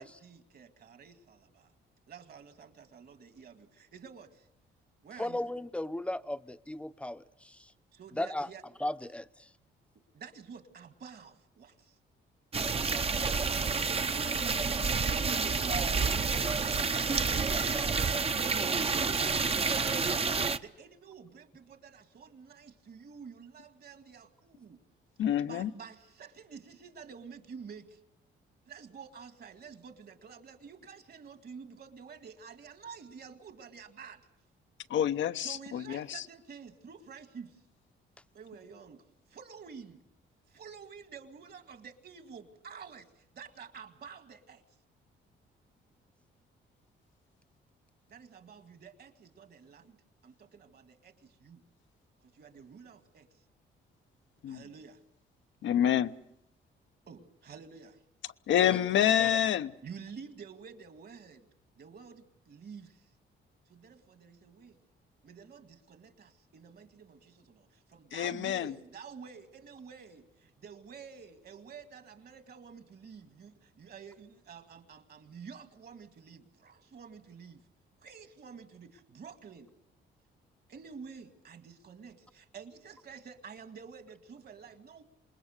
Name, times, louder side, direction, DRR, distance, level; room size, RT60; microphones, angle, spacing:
voice 1, 0.0-1.7 2.1-4.5 5.0-5.5 7.9-8.6 10.1-12.0 13.6-15.8 16.5-24.8 25.4-28.0 28.7-34.2 35.4-37.6 38.3-40.0 40.5-44.6 48.1-50.0 50.2-51.6 52.2-53.4 54.5-55.0 57.1-58.0 59.7-61.5 61.8-63.1 63.7-64.8 65.2-77.6 78.0-79.7 80.7-85.0, right 6 dB, 55° right, 2.2 m, -50 dB
voice 2, 5.2-7.6 8.1-8.5 8.8-9.3 58.7-58.8 59.2-59.3, left 1 dB, 5° left, 0.8 m, -35 dB
sound 1, 12.5-20.6, right 4 dB, 30° right, 0.8 m, -29 dB
voice 3, 25.2-25.7 34.9-36.2 54.4-54.6 55.6-56.1 58.5-59.7 68.1-68.7, left 10 dB, 70° left, 0.9 m, -27 dB
27.0 x 20.5 x 6.7 m
cardioid pair, 90°, 20 cm